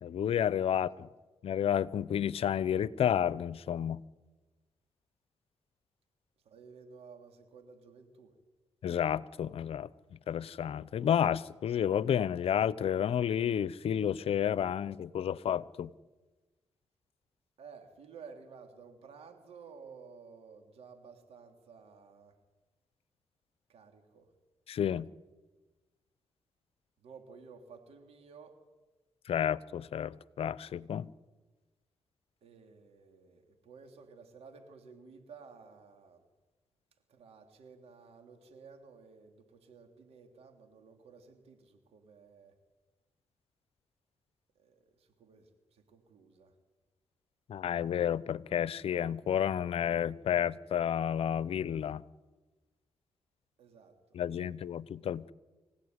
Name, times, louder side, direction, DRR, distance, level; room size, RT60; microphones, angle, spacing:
voice 1, 0.0-1.1 1.4-4.0 8.8-9.9 10.3-15.9 24.7-25.1 29.3-31.1 47.5-52.0 54.1-55.3, left 9 dB, 70° left, 20 dB, 0.7 m, -31 dB
voice 2, 6.4-8.3 17.6-22.3 23.7-24.3 27.0-28.6 32.4-36.2 37.1-42.5 44.6-46.5 53.6-53.9, right 5 dB, 80° right, 6 dB, 3.5 m, -54 dB
25.5 x 16.5 x 9.7 m, 1.2 s
cardioid pair, 60°, 10 cm